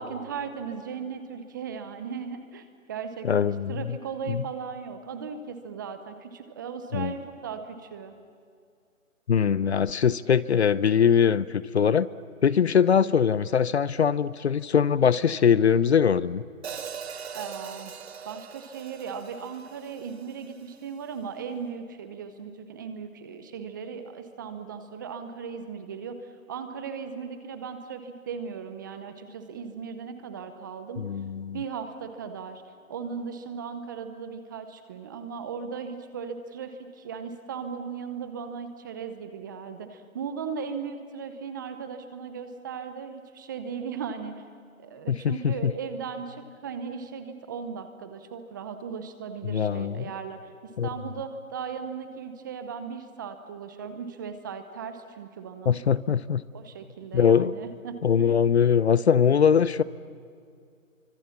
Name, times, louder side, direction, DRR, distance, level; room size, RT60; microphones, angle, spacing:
voice 1, 0.0-8.1 17.3-17.9 18.2-31.0 31.5-32.6 32.9-44.4 44.8-55.8 56.5-58.3, right 6 dB, 15° right, 9 dB, 0.8 m, -37 dB
voice 2, 3.2-4.0 4.3-4.4 6.9-7.1 9.3-12.1 12.4-16.4 31.0-31.6 45.1-45.7 49.5-50.0 50.8-50.9 55.7-56.4 57.1-57.5 58.0-59.8, left 7 dB, 50° left, 18 dB, 0.8 m, -22 dB
Hi-hat, 16.6-20.8, right 7 dB, 50° right, 1.4 m, -41 dB
29.5 x 25.0 x 7.2 m, 2.3 s
hypercardioid pair, 155°, 41 cm